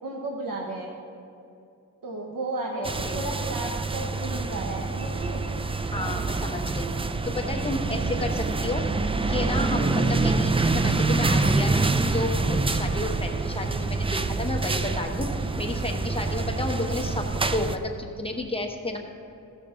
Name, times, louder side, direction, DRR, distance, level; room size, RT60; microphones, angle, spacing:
voice 1, 0.0-0.9 2.0-5.4, right 2 dB, 85° right, 0 dB, 1.0 m, -33 dB
voice 2, 2.8-3.2 5.9-6.9 7.2-8.8 9.3-17.3 17.5-19.0, left 2 dB, 15° left, 2 dB, 0.9 m, -31 dB
sound 1, 2.8-17.8, right 3 dB, 20° right, 0.3 m, -26 dB
15.5 x 6.6 x 3.7 m, 2.6 s
wide cardioid pair, 135°, 33 cm